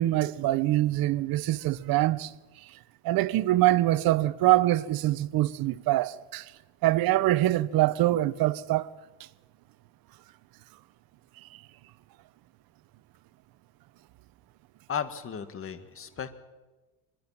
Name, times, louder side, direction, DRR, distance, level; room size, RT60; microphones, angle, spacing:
voice 1, 0.0-2.3 3.0-6.5 6.8-8.9, right 15 dB, 50° right, 1.1 m, -24 dB
voice 2, 14.9-16.3, left 7 dB, 30° left, 2.1 m, -34 dB
25.0 x 22.0 x 6.0 m
supercardioid pair, 115°, 44 cm